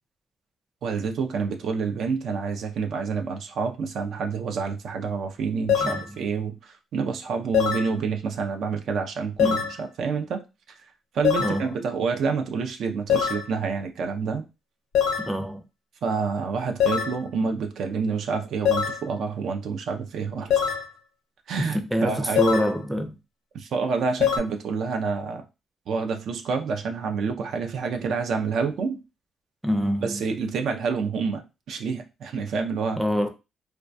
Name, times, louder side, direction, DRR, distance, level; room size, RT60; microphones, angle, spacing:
voice 1, 0.8-10.4 11.1-14.4 16.0-20.7 21.5-22.5 23.5-25.4 25.9-29.0 30.0-33.0, right 5 dB, 70° right, 0.4 m, -28 dB
sound 1, 5.7-6.1 7.5-7.9 9.4-9.8 11.2-11.6 13.1-13.5 14.9-15.3 16.8-17.2 18.6-19.0 20.5-20.9 22.3-22.7 24.2-24.4, left 8 dB, 85° left, 0.6 m, -23 dB
voice 2, 11.4-11.7 15.2-15.6 21.6-23.2 29.6-30.2 33.0-33.3, equal, 5° right, 0.4 m, -26 dB
2.2 x 2.2 x 2.5 m
cardioid pair, 90°, 0 cm